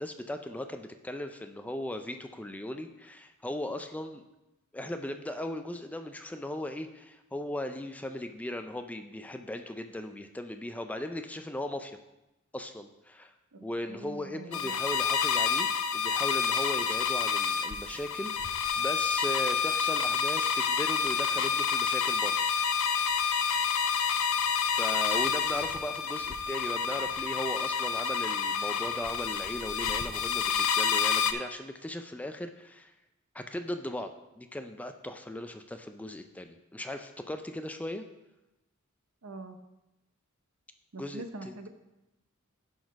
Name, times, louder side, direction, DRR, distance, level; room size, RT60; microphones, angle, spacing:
voice 1, 0.0-4.2 4.7-12.0 12.5-13.3 13.6-22.4 24.6-32.9 33.3-38.1 41.0-41.5, left 1 dB, 5° left, 7 dB, 0.4 m, -38 dB
voice 2, 13.5-14.7 39.2-39.6 40.9-41.7, right 2 dB, 75° right, 8 dB, 0.8 m, -43 dB
sound 1, 14.5-31.3, left 6 dB, 70° left, 0.6 m, -29 dB
10.5 x 4.1 x 5.1 m, 0.97 s
head